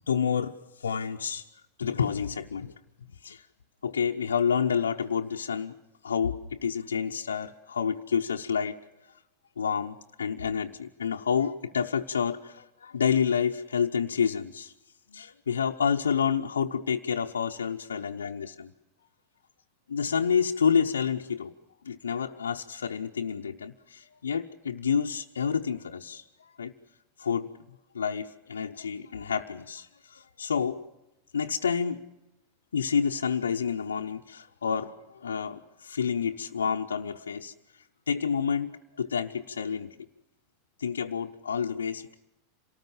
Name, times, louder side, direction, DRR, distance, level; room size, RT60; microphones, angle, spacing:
voice 1, 0.1-1.5 1.8-2.7 3.2-3.5 3.8-5.7 6.0-8.8 9.6-14.7 15.1-18.7 19.9-21.5 21.8-26.7 27.2-27.5 27.9-30.8 31.3-32.0 32.7-40.1 40.8-42.1, left 7 dB, 80° left, 2 dB, 0.7 m, -29 dB
27.5 x 18.5 x 7.2 m, 0.98 s
hypercardioid pair, 90°, 0 cm